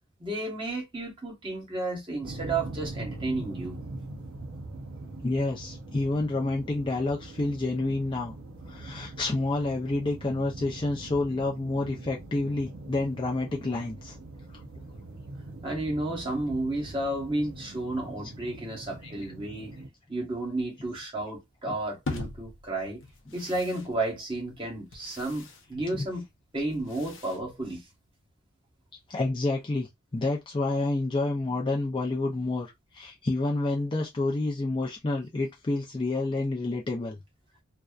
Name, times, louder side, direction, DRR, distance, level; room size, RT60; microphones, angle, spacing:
voice 1, 0.2-3.8 15.6-19.7 20.1-23.0 23.3-26.2 26.5-27.8, right 2 dB, 25° right, 1.0 m, -32 dB
sound 1, 2.2-19.9, right 2 dB, 75° right, 0.6 m, -42 dB
voice 2, 5.2-8.3 8.7-14.2 18.2-18.3 19.0-19.1 21.6-21.7 25.7-26.1 29.1-37.2, left 2 dB, 25° left, 0.4 m, -29 dB
sound 2, 22.1-28.3, left 3 dB, 70° left, 0.6 m, -43 dB
2.6 x 2.1 x 2.3 m
head